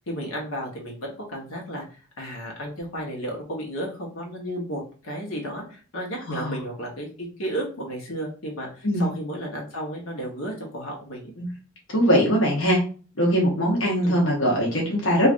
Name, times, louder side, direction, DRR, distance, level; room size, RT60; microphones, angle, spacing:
voice 1, 0.1-11.3 14.0-14.3, equal, 90° left, -1 dB, 1.0 m, -33 dB
voice 2, 11.9-12.8 13.2-15.3, equal, 65° left, -2 dB, 0.9 m, -21 dB
3.1 x 2.5 x 2.5 m, 0.38 s
head